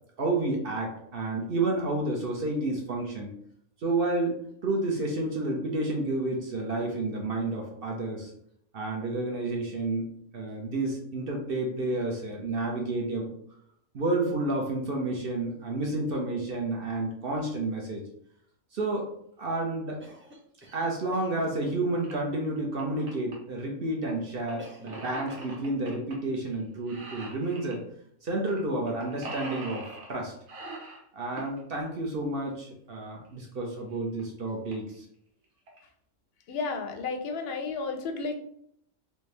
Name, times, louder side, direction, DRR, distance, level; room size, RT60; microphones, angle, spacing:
voice 1, 0.2-3.3 3.8-8.3 8.7-13.3 13.9-18.0 18.7-19.1 19.4-20.0 20.7-27.8 28.2-30.3 31.1-35.1, right 2 dB, 55° right, 0 dB, 0.8 m, -30 dB
Cough, 20.0-21.6 24.6-25.0 25.3-25.7, right 1 dB, 20° right, 0.3 m, -49 dB
sound 1, 22.0-22.1 22.6-23.3 24.5-26.1 26.4-26.6 26.9-27.8 28.5-28.6 28.9-30.1 30.5-31.6 33.2-33.3 33.9-34.0 34.2-34.3 34.7-34.9 35.4-35.8, right 2 dB, 85° right, 1.4 m, -42 dB
voice 2, 36.5-38.4, left 4 dB, 60° left, 5 dB, 0.7 m, -32 dB
3.4 x 2.7 x 3.2 m, 0.70 s
omnidirectional pair, 1.4 m